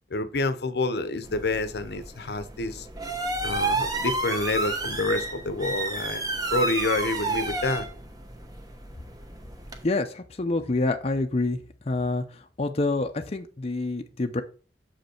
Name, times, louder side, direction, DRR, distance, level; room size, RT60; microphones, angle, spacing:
voice 1, 0.1-2.9 3.4-6.2 6.5-7.9, left 2 dB, 65° left, 0.8 m, -28 dB
sound 1, 1.2-9.8, right 3 dB, 20° right, 1.2 m, -31 dB
voice 2, 9.8-11.6 11.9-12.2 12.6-14.4, left 2 dB, 35° left, 0.6 m, -27 dB
7.2 x 5.4 x 4.4 m
head